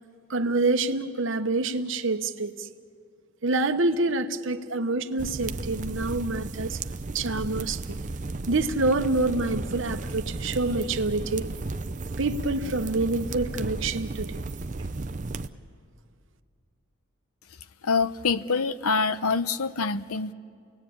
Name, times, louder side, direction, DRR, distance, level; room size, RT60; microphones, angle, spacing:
voice 1, 0.3-2.7 3.4-6.8 7.1-8.0 8.5-11.5 12.2-14.4, right 2 dB, 60° right, 8 dB, 1.0 m, -27 dB
sound 1, 5.2-15.5, right 3 dB, 35° right, 0.6 m, -34 dB
voice 2, 17.8-20.3, left 4 dB, 90° left, 14 dB, 0.7 m, -25 dB
29.0 x 19.0 x 8.6 m, 2.3 s
head